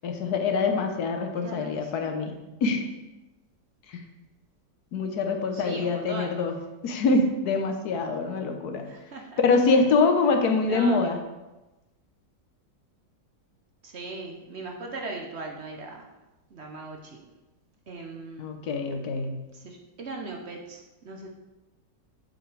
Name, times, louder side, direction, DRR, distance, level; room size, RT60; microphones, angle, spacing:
voice 1, 0.0-2.3 2.6-2.8 4.9-6.5 6.8-8.8 9.4-11.2 18.4-19.3, left 3 dB, 65° left, 5 dB, 1.4 m, -24 dB
voice 2, 1.3-2.2 5.5-6.4 8.8-9.4 10.6-11.1 13.8-16.1 16.5-17.3 17.9-18.5 19.5-21.3, right 3 dB, 50° right, 1 dB, 0.9 m, -39 dB
7.7 x 7.2 x 3.3 m, 1.1 s
omnidirectional pair, 1.9 m